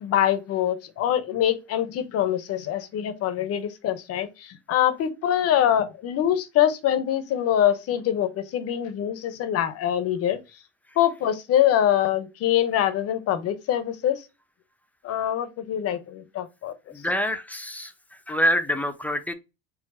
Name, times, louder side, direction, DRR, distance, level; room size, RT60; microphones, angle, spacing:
voice 1, 0.0-10.4 11.0-14.2 15.0-16.7, left 11 dB, 50° left, 0.7 m, -24 dB
voice 2, 16.9-17.9 18.3-19.3, equal, 5° left, 0.6 m, -25 dB
4.7 x 2.0 x 4.2 m
hypercardioid pair, 80°, 31 cm